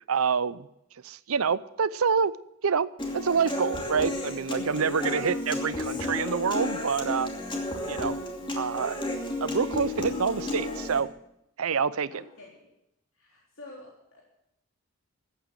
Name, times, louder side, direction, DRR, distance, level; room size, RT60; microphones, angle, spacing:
voice 1, 0.1-0.7 1.0-2.3 2.6-2.9 3.1-7.3 7.9-8.2 8.6-9.0 9.4-11.1 11.6-12.1, right 6 dB, 85° right, 18 dB, 0.6 m, -27 dB
Human voice / Acoustic guitar, 3.0-11.0, left 2 dB, 25° left, 2.6 m, -32 dB
voice 2, 12.1-12.7 13.1-14.2, left 2 dB, 75° left, -3 dB, 3.9 m, -48 dB
14.5 x 9.1 x 8.0 m, 0.82 s
head